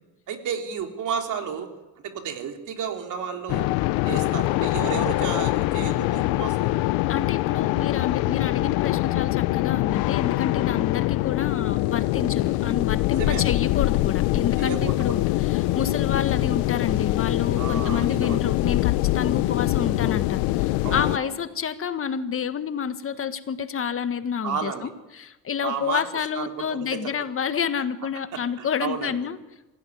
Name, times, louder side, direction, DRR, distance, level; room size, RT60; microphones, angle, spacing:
voice 1, 0.3-1.7 2.0-3.7 4.1-6.8 13.2-13.5 14.6-15.2 17.6-18.4 20.8-21.3 24.4-24.9 25.6-26.0 26.4-27.0 28.3-29.2, right 7 dB, 60° right, 4 dB, 3.5 m, -32 dB
sound 1, 3.5-21.2, left 18 dB, 85° left, 0.8 m, -24 dB
voice 2, 7.1-24.7 25.2-29.4, left 7 dB, 40° left, 10 dB, 1.6 m, -29 dB
24.5 x 16.5 x 9.5 m, 1.0 s
cardioid pair, 110°, 35 cm